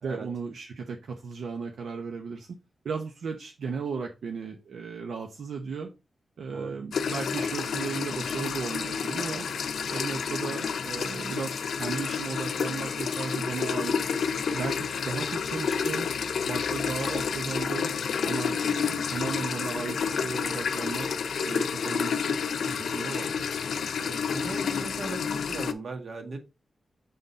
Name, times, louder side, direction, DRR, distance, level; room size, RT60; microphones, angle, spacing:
voice 1, 0.0-2.5 2.8-5.9 6.4-9.5 9.9-14.0 14.5-16.1 16.4-17.9 18.2-21.1 21.4-23.3, right 5 dB, 85° right, 0.9 m, -35 dB
sound 1, 6.9-25.7, left 6 dB, 90° left, 0.6 m, -30 dB
voice 2, 24.0-26.4, right 3 dB, 60° right, 1.7 m, -38 dB
6.9 x 3.9 x 4.0 m
wide cardioid pair, 105°, 0 cm